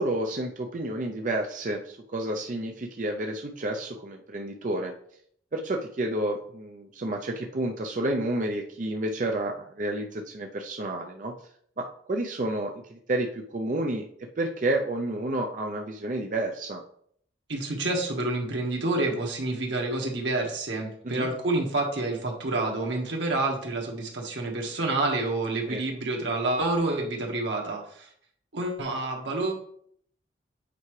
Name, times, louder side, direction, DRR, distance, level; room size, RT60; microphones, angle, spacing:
voice 1, 0.0-4.9 5.5-11.3 11.8-14.1 14.4-16.8 21.0-21.3 25.7-25.8, right 1 dB, 45° right, 2 dB, 0.5 m, -30 dB
voice 2, 17.5-28.1 28.5-29.5, right 2 dB, 85° right, 0 dB, 1.5 m, -28 dB
8.2 x 4.7 x 3.2 m, 0.65 s
head